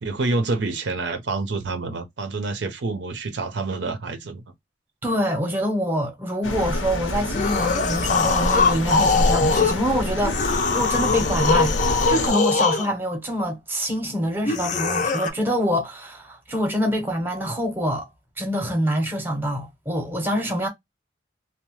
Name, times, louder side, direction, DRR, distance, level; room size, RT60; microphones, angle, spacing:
voice 1, 0.0-4.4, right 3 dB, 65° right, 0.5 m, -27 dB
voice 2, 5.0-11.7 12.1-18.1 18.4-20.7, equal, 10° right, 0.7 m, -25 dB
sound 1, 6.4-12.3, left 1 dB, 85° left, 0.7 m, -27 dB
sound 2, 7.3-9.8 10.2-12.9 14.4-15.3, left 4 dB, 40° left, 0.5 m, -22 dB
2.7 x 2.0 x 3.0 m
head